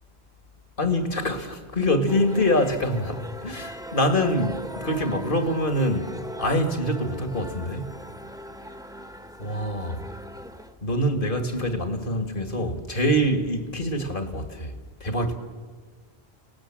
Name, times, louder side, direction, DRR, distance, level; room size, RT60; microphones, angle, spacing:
voice 1, 0.8-6.1 6.4-7.9 9.4-10.0 10.8-14.8 15.0-15.4, equal, 55° left, 2.2 m, -25 dB
sound 1, 2.1-10.7, right 1 dB, 5° right, 1.2 m, -39 dB
30.0 x 18.5 x 7.5 m
omnidirectional pair, 1.1 m